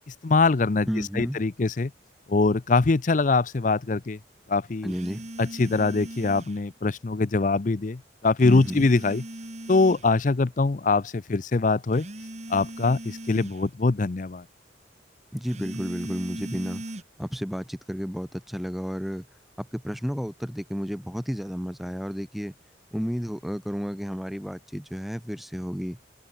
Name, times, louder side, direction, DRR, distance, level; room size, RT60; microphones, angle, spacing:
voice 1, 0.2-0.9 1.2-1.9 2.3-4.2 4.5-4.9 5.4-9.2 9.7-12.1 12.5-14.4, left 3 dB, 45° left, 0.5 m, -23 dB
voice 2, 0.9-1.4 4.8-5.3 8.4-8.9 15.3-16.8 17.2-19.3 19.6-22.5 22.9-26.0, equal, ahead, 0.7 m, -32 dB
sound 1, 4.9-6.6 8.4-10.1 11.9-13.6 15.4-17.0, right 1 dB, 40° right, 3.8 m, -39 dB
head